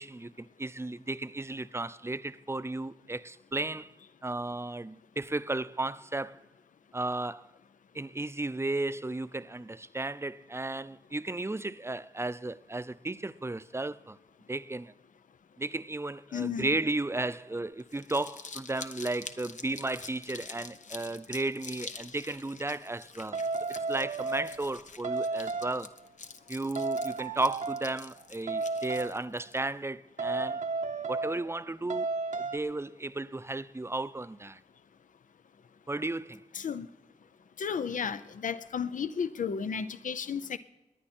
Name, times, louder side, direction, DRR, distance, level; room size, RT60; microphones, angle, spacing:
voice 1, 0.0-3.9 4.2-6.4 6.9-7.5 7.9-14.2 14.5-14.9 15.6-23.4 23.9-26.0 26.5-30.6 31.1-32.1 32.4-34.6 35.9-36.4, right 2 dB, 20° right, 0.5 m, -34 dB
voice 2, 16.3-16.7 36.5-36.9 37.6-40.6, left 6 dB, 90° left, 0.5 m, -33 dB
Crumpling crinkling, 17.8-29.6, left 4 dB, 70° left, 0.9 m, -46 dB
sound 1, 23.3-24.7 25.0-25.9 26.8-28.0 28.5-29.2 30.2-31.6 31.9-32.6, right 3 dB, 75° right, 0.8 m, -33 dB
20.5 x 9.9 x 4.3 m
cardioid pair, 60°, 13 cm